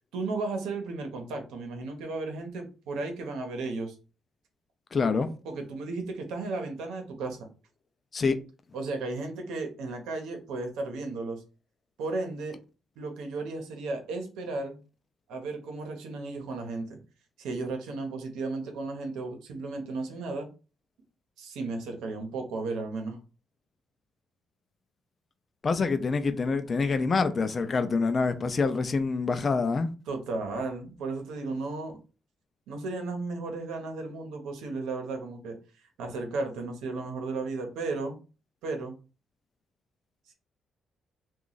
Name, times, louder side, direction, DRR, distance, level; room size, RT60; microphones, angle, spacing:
voice 1, 0.1-3.9 5.4-7.5 8.7-11.4 12.0-12.6 13.0-14.8 15.3-17.0 17.4-20.5 21.4-23.2 30.1-32.0 32.7-35.6 36.0-38.2 38.6-39.0, right 3 dB, 90° right, 0.9 m, -34 dB
voice 2, 4.9-5.3 8.1-8.3 25.6-29.9, left 4 dB, 40° left, 0.5 m, -26 dB
3.0 x 2.4 x 3.9 m
cardioid pair, 90°, 0 cm